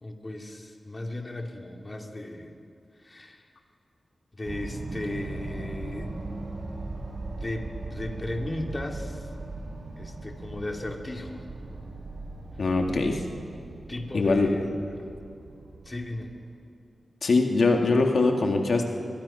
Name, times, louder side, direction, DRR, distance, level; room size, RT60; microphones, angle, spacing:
voice 1, 0.0-2.5 3.0-3.5 4.3-6.2 7.3-9.3 10.0-11.4 13.9-14.7 15.0-15.1 15.8-16.3, left 1 dB, 30° left, 2 dB, 2.7 m, -35 dB
sound 1, 4.4-16.5, right 2 dB, 70° right, 4.3 m, -39 dB
voice 2, 12.6-13.2 14.1-14.5 17.2-18.9, left 3 dB, 70° left, 3 dB, 2.1 m, -22 dB
24.5 x 22.5 x 5.7 m, 2.4 s
wide cardioid pair, 70°, 0 cm